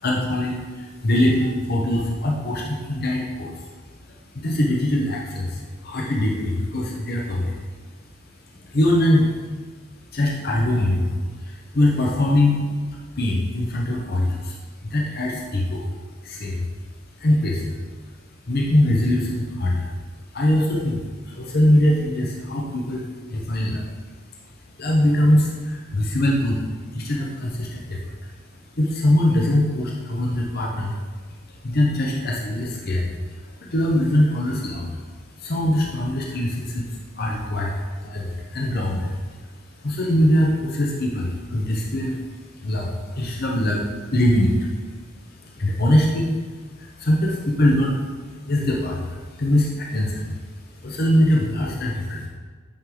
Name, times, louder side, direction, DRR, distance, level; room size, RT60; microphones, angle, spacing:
voice 1, 0.0-3.5 4.3-7.5 8.5-9.3 10.1-12.7 13.2-14.6 14.8-15.8 16.2-16.7 17.2-17.8 18.5-19.9 20.3-23.8 24.8-26.6 26.9-28.1 28.8-31.0 31.6-34.9 35.4-39.2 39.8-42.2 42.6-44.8 45.4-46.3 46.7-48.0 48.4-50.3 50.8-52.3, left 1 dB, 50° left, -2 dB, 0.8 m, -22 dB
8.7 x 4.7 x 3.9 m, 1.5 s
head